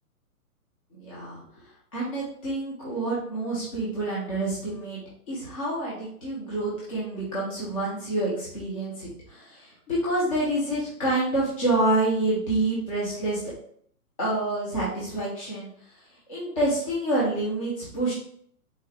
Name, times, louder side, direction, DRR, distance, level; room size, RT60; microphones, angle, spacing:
voice 1, 0.9-1.4 1.9-5.0 5.3-13.4 14.2-15.7 16.3-18.1, right 2 dB, 20° left, -7 dB, 0.6 m, -27 dB
3.6 x 2.1 x 3.2 m, 0.63 s
hypercardioid pair, 160°, 46 cm